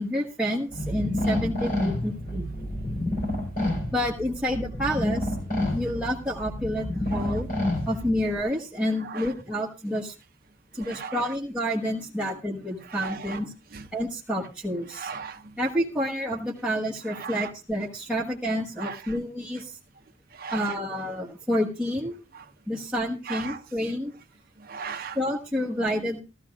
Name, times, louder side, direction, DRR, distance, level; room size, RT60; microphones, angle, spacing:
voice 1, 0.0-2.5 2.9-3.0 3.9-5.3 5.7-7.5 7.9-10.1 10.7-13.5 13.9-15.1 15.6-19.8 20.5-22.2 22.7-24.1 25.1-26.2, equal, 5° right, 1.3 m, -29 dB
sound 1, 0.7-8.4, left 1 dB, 45° left, 4.4 m, -29 dB
voice 2, 7.1-7.4 9.0-9.3 10.8-11.3 12.8-13.4 13.7-13.9 14.9-15.6 17.1-17.5 18.8-19.2 20.3-20.7 22.3-22.5 23.2-23.9 24.6-25.2, right 6 dB, 50° right, 0.7 m, -38 dB
16.5 x 13.5 x 2.4 m
head